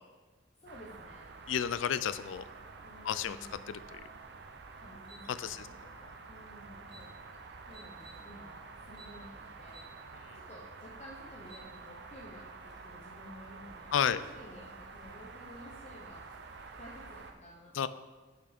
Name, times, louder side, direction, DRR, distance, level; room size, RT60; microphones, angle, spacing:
voice 1, 0.5-1.3 2.8-3.6 4.7-7.1 7.7-9.9 10.3-17.9, equal, 35° left, -3 dB, 0.9 m, -53 dB
sound 1, 0.7-17.3, right 4 dB, 55° right, 0.6 m, -49 dB
voice 2, 1.5-2.4 3.0-3.4 3.7-4.0 5.3-5.7 13.9-14.2 17.8-17.9, left 8 dB, 75° left, 14 dB, 0.4 m, -31 dB
sound 2, 5.0-5.2 6.5-6.6 6.8-7.1 7.7-8.2 8.9-9.2 9.7-9.9 10.3-10.4 11.2-11.7, right 2 dB, 25° right, 2.5 m, -54 dB
6.7 x 6.0 x 5.0 m, 1.3 s
head